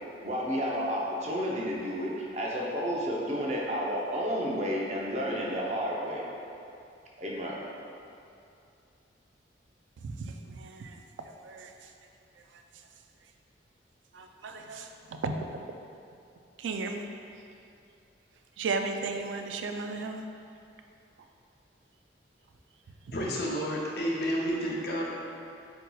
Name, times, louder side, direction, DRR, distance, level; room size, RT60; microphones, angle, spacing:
voice 1, 0.2-6.3 7.2-7.6, equal, 35° right, -4 dB, 0.6 m, -31 dB
voice 2, 10.0-11.7 14.1-15.7 16.6-17.0 18.6-20.2, right 3 dB, 85° right, 5 dB, 0.3 m, -35 dB
voice 3, 23.1-25.1, equal, 55° left, -3 dB, 0.7 m, -30 dB
8.0 x 2.8 x 2.3 m, 2.6 s
head